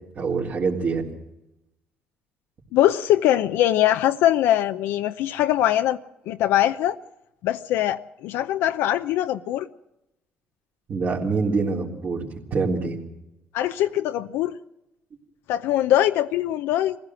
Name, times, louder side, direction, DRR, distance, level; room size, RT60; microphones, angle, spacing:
voice 1, 0.2-1.0 10.9-13.0, right 4 dB, 50° right, 3.7 m, -25 dB
voice 2, 2.7-6.0 6.3-7.0 7.4-9.7 13.5-14.5 15.5-17.0, left 12 dB, 85° left, 0.6 m, -22 dB
23.0 x 16.0 x 7.7 m
supercardioid pair, 80°, 4 cm